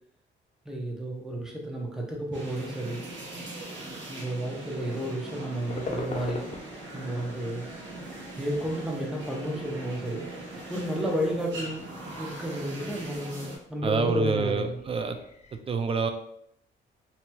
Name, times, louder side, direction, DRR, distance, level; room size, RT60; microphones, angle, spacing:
voice 1, 0.7-3.0 4.1-6.5 6.9-7.8 8.4-10.2 10.7-11.9 12.2-14.8, right 1 dB, 5° right, -2 dB, 0.8 m, -32 dB
sound 1, 2.3-13.6, right 2 dB, 70° right, 1.0 m, -41 dB
sound 2, 5.7-15.6, left 4 dB, 35° left, 0.5 m, -44 dB
voice 2, 13.8-15.2 15.7-16.1, right 4 dB, 30° right, 7 dB, 0.3 m, -27 dB
2.9 x 2.8 x 2.2 m, 0.72 s
cardioid pair, 90°, 20 cm